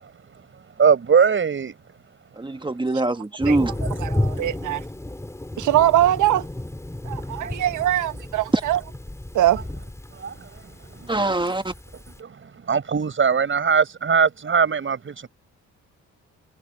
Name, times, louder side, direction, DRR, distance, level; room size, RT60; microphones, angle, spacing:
voice 1, 0.8-1.7 7.4-7.5 10.2-10.5 11.2-11.3 12.2-12.4 12.7-15.3, right 6 dB, 40° right, 5.9 m, -20 dB
voice 2, 2.4-3.7 8.5-8.6 11.1-11.7, right 2 dB, 15° right, 1.6 m, -23 dB
Thunder, 3.4-12.2, left 1 dB, 10° left, 4.6 m, -32 dB
voice 3, 4.0-4.8 5.6-6.5 7.0-8.8 9.3-9.6, right 13 dB, 80° right, 1.4 m, -21 dB
cardioid pair, 90°, 30 cm